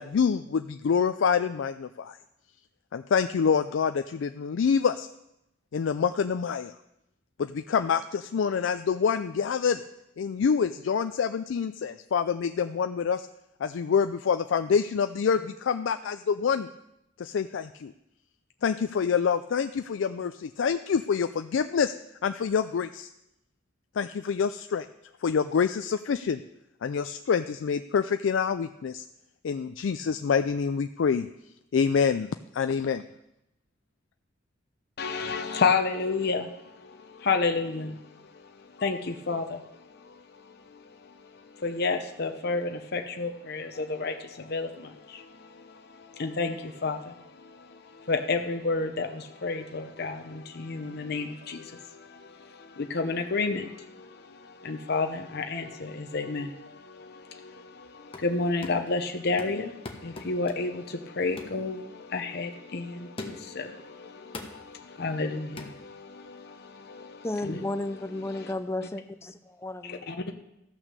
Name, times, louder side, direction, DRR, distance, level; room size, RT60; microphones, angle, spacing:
voice 1, 0.0-2.2 2.9-5.1 5.7-6.7 7.4-9.8 10.2-13.3 13.6-16.7 17.2-17.9 18.6-21.9 22.2-23.1 24.0-24.9 25.2-26.4 26.8-29.0 29.4-31.3 31.7-33.0, left 6 dB, 80° left, 0.4 m, -26 dB
voice 2, 35.0-38.0 38.3-40.2 40.7-41.1 41.5-67.9 68.3-68.5 69.8-70.3, left 4 dB, 60° left, 0.8 m, -31 dB
sound 1, 57.9-58.4 58.6-59.0 59.4-60.8 61.4-61.6 62.1-62.3 63.2-63.6 64.3-64.7 65.6-65.8, left 2 dB, 30° left, 1.1 m, -42 dB
voice 3, 67.2-70.0, left 2 dB, 15° left, 0.5 m, -33 dB
14.0 x 6.1 x 6.7 m
head